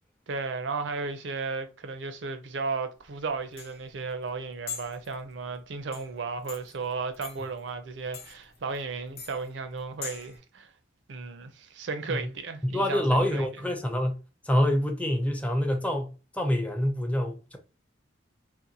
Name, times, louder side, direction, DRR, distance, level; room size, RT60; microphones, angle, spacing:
voice 1, 0.3-10.7 11.1-13.5, right 4 dB, 70° right, 0.5 m, -34 dB
sound 1, 3.0-10.4, left 6 dB, 55° left, 0.7 m, -44 dB
voice 2, 12.6-17.6, left 1 dB, 10° left, 0.5 m, -26 dB
2.6 x 2.1 x 2.8 m
head